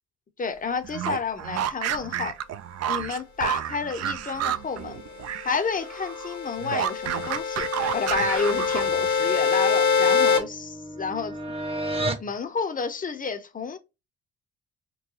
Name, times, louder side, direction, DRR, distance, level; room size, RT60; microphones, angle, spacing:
voice 1, 0.4-2.3 2.9-5.0 5.4-11.3 12.2-13.8, left 5 dB, 30° left, 0.7 m, -30 dB
sound 1, 0.8-5.6 5.8-9.1, right 10 dB, 60° right, 0.5 m, -30 dB
sound 2, 5.4-10.4, left 5 dB, 80° left, 1.0 m, -25 dB
sound 3, 9.1-12.3, right 1 dB, 20° right, 0.8 m, -33 dB
3.9 x 2.2 x 2.8 m
cardioid pair, 90°, 30 cm